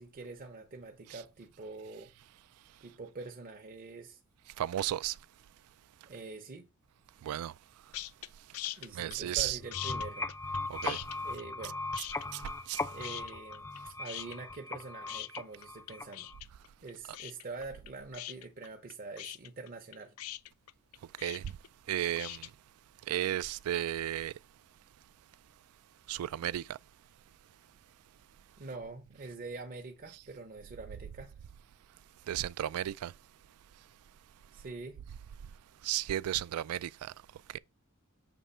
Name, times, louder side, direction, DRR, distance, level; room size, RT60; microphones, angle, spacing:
voice 1, 0.0-2.1 2.8-4.2 6.1-6.7 8.8-10.3 11.2-11.8 12.9-16.3 16.8-20.1 28.6-31.4 34.5-35.0, right 3 dB, 40° right, 0.8 m, -45 dB
voice 2, 4.6-5.2 7.2-7.5 9.0-9.6 10.7-11.0 12.3-12.4 12.7-12.8 21.2-21.5 21.9-22.5 23.1-24.3 26.1-26.8 32.3-33.1 35.8-37.1 37.5-37.6, right 12 dB, 80° right, 0.3 m, -33 dB
sound 1, 7.9-8.3 8.5-9.4 9.7-11.7 11.9-12.7 13.0-13.8 14.0-22.5, left 15 dB, 80° left, 0.4 m, -42 dB
sound 2, 9.6-16.4, left 3 dB, 10° left, 0.4 m, -39 dB
7.0 x 3.1 x 5.5 m
head